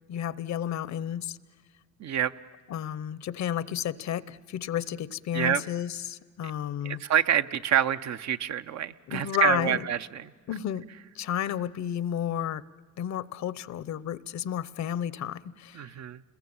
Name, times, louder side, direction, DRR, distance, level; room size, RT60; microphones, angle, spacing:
voice 1, 0.1-1.4 2.7-7.0 9.1-9.8 10.5-10.9 11.1-12.6 13.0-15.8, left 10 dB, 65° left, 18 dB, 0.8 m, -31 dB
voice 2, 2.0-2.3 5.3-5.6 6.8-10.3 15.7-16.2, right 10 dB, 65° right, 11 dB, 0.8 m, -27 dB
29.5 x 21.5 x 8.7 m, 1.4 s
cardioid pair, 90°, 30 cm